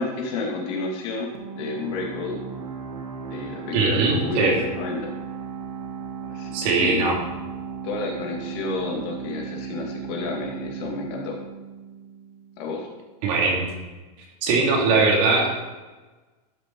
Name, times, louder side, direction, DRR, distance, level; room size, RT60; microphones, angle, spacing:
voice 1, 0.0-2.4 3.3-5.1 6.2-7.1 7.8-11.4 12.6-12.9, left 3 dB, 45° left, 0 dB, 2.4 m, -30 dB
sound 1, 1.3-12.7, right 6 dB, 70° right, 2.2 m, -36 dB
voice 2, 3.7-4.6 6.5-7.2 13.2-13.7 14.4-15.5, right 3 dB, 40° right, -1 dB, 2.7 m, -20 dB
13.0 x 7.5 x 4.6 m, 1.2 s
supercardioid pair, 170°, 20 cm